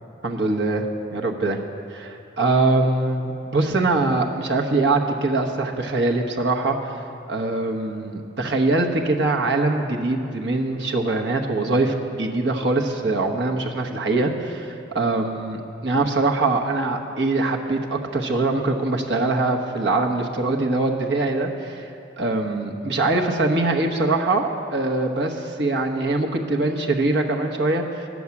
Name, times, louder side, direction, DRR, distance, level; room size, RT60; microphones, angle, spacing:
voice 1, 0.2-0.9 1.1-1.6 1.9-6.9 7.3-21.9 22.2-28.1, right 2 dB, 60° right, 1 dB, 1.1 m, -23 dB
11.0 x 7.1 x 9.6 m, 2.6 s
head